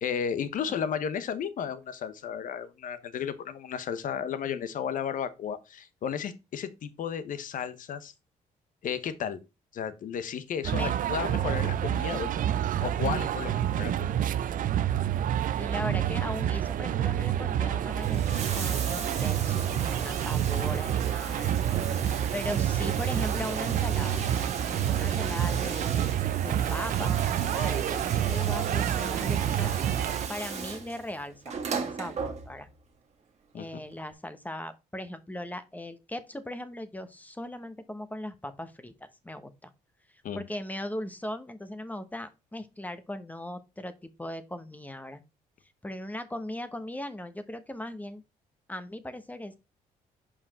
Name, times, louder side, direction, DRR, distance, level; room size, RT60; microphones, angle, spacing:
voice 1, 0.0-8.1 8.8-9.4 9.7-12.4 12.8-14.2 33.5-33.8 40.2-40.4, left 8 dB, 65° left, 1.0 m, -33 dB
sound 1, 10.6-30.3, right 11 dB, 60° right, 0.6 m, -28 dB
voice 2, 15.6-21.5 21.9-22.0 22.3-24.2 24.9-26.1 26.4-29.7 30.3-32.7 33.5-39.7 40.3-45.2 45.8-48.2 48.7-49.6, left 1 dB, 10° left, 1.1 m, -38 dB
Bathtub (filling or washing), 17.8-32.8 33.9-34.0, right 5 dB, 45° right, 1.7 m, -37 dB
5.5 x 5.0 x 4.2 m
cardioid pair, 80°, 15 cm